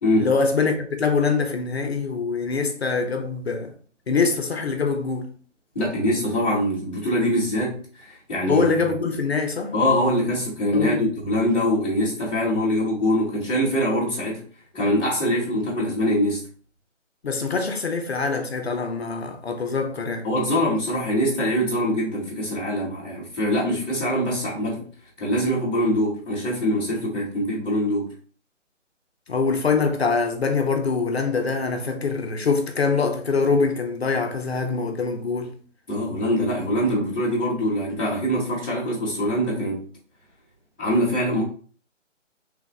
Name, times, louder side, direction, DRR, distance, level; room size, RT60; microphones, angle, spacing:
voice 1, 0.2-3.7 4.1-5.3 8.5-9.7 10.7-11.0 17.2-20.3 29.3-35.5, left 4 dB, 55° left, 0.6 m, -24 dB
voice 2, 5.7-8.7 9.7-14.4 14.7-16.5 20.2-24.8 25.2-28.1 35.9-39.9 40.8-41.4, equal, 10° left, 0.6 m, -23 dB
3.2 x 2.1 x 3.3 m
figure-of-eight pair, 150°, 38 cm